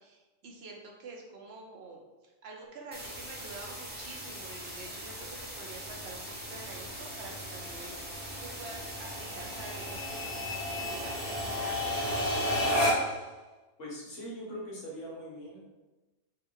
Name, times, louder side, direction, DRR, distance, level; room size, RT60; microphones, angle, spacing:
voice 1, 0.0-5.3 5.6-12.1, right 3 dB, 65° right, 0 dB, 0.9 m, -47 dB
sound 1, 2.9-12.9, equal, 10° right, 0.7 m, -42 dB
sound 2, 3.0-13.3, left 1 dB, 35° left, 0.9 m, -34 dB
voice 2, 13.8-15.7, equal, 80° left, -4 dB, 1.5 m, -41 dB
3.6 x 2.4 x 4.5 m, 1.1 s
omnidirectional pair, 1.2 m